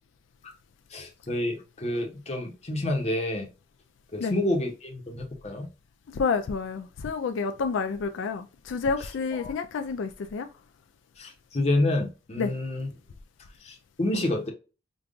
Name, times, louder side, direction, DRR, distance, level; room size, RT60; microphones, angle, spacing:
voice 1, 0.9-3.5 4.1-5.7 9.0-9.5 11.2-12.9 13.6-14.5, left 1 dB, 35° left, 0.8 m, -29 dB
voice 2, 6.1-10.5 12.4-12.5, left 5 dB, 80° left, 0.4 m, -29 dB
5.1 x 2.3 x 2.4 m
head